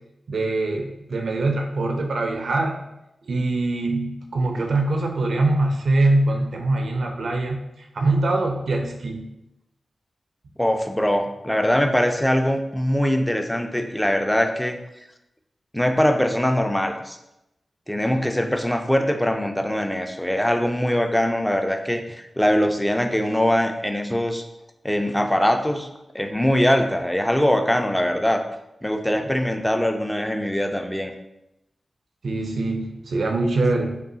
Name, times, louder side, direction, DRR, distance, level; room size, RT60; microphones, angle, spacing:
voice 1, 0.3-2.8 3.3-7.6 7.9-9.3 32.2-34.0, right 2 dB, 75° right, 3 dB, 0.5 m, -23 dB
voice 2, 10.6-14.8 15.7-17.2 17.9-24.5 24.8-25.9 26.1-28.4 28.8-31.1, equal, 10° left, 6 dB, 0.4 m, -22 dB
5.2 x 2.3 x 2.7 m, 0.89 s
cardioid pair, 65°, 0 cm